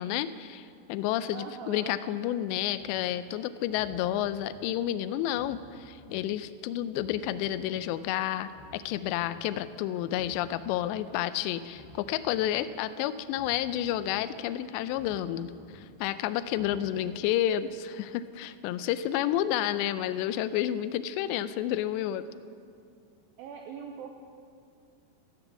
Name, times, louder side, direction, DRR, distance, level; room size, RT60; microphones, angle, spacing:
voice 1, 0.0-22.2, left 12 dB, 85° left, 14 dB, 2.8 m, -30 dB
voice 2, 1.3-2.0 16.7-17.2 23.4-24.1, right 7 dB, 85° right, 3 dB, 2.1 m, -42 dB
sound 1, 2.8-3.0 3.6-4.6 5.2-6.2 6.8-7.8 8.4-9.4 10.0-11.0 11.6-12.6 13.2-14.2 14.8-15.8 16.4-17.1, left 2 dB, 65° left, 3.0 m, -53 dB
14.5 x 10.0 x 7.1 m, 2.4 s
omnidirectional pair, 5.0 m